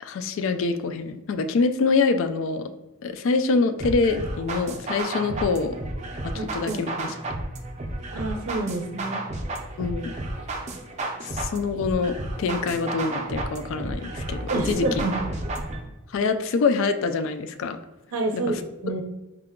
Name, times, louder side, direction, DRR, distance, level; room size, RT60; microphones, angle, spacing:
voice 1, 0.0-2.7 3.0-5.8 6.3-7.1 9.8-10.1 11.2-14.9 16.1-17.8 18.3-18.6, left 4 dB, 60° left, 9 dB, 0.3 m, -25 dB
sound 1, 3.8-15.8, right 2 dB, 30° right, 0.5 m, -32 dB
voice 2, 6.3-6.8 8.1-9.2 14.5-15.2 18.1-19.0, right 2 dB, 80° right, 4 dB, 0.6 m, -28 dB
4.7 x 2.2 x 3.6 m, 1.1 s
head